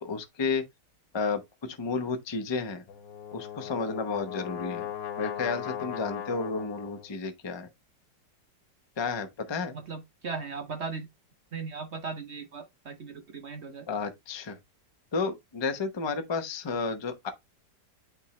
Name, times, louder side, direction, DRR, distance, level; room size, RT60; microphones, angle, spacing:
voice 1, 0.0-0.6 1.1-1.4 1.7-2.8 3.3-4.9 5.2-7.7 9.0-9.8 13.9-14.6 15.1-17.3, left 4 dB, 35° left, 0.4 m, -32 dB
Brass instrument, 2.9-7.1, left 9 dB, 90° left, 1.7 m, -38 dB
voice 2, 9.7-11.1 11.5-13.8, right 5 dB, 55° right, 0.8 m, -37 dB
8.7 x 3.6 x 3.1 m
omnidirectional pair, 1.9 m